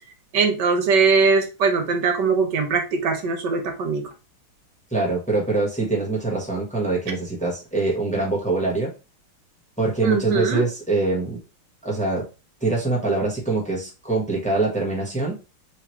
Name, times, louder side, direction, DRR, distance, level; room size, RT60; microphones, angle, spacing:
voice 1, 0.3-4.1 10.0-10.7, right 4 dB, 65° right, 5 dB, 1.2 m, -21 dB
voice 2, 4.9-8.9 9.8-11.4 11.8-12.2 12.6-15.4, right 3 dB, 5° left, -2 dB, 0.7 m, -24 dB
3.5 x 3.2 x 4.3 m, 0.30 s
omnidirectional pair, 2.4 m